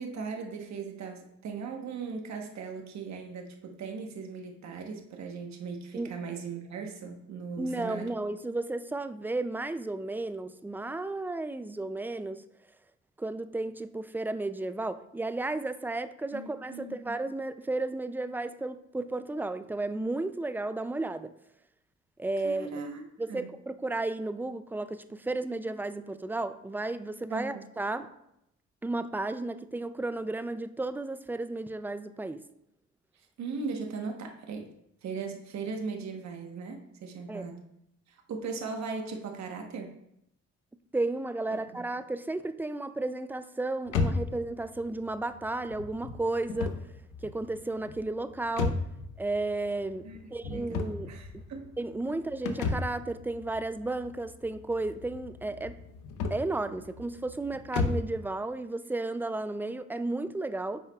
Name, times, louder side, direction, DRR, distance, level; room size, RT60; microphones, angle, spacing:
voice 1, 0.0-8.1 16.3-17.0 22.4-23.0 23.3-23.5 27.3-27.7 33.4-34.7 35.0-37.6 38.1-40.0 41.7-41.9 50.0-51.7, right 4 dB, 65° right, 3 dB, 1.1 m, -38 dB
voice 2, 7.6-12.4 13.2-21.3 22.2-22.8 23.2-28.1 28.8-32.4 37.3-37.5 40.9-46.7 47.2-48.8 49.2-51.4 51.8-55.7 56.3-60.8, right 2 dB, 5° right, 11 dB, 0.3 m, -33 dB
sound 1, 43.9-58.2, left 4 dB, 85° left, 0.8 m, -35 dB
9.2 x 5.7 x 2.3 m, 0.79 s
cardioid pair, 90°, 30 cm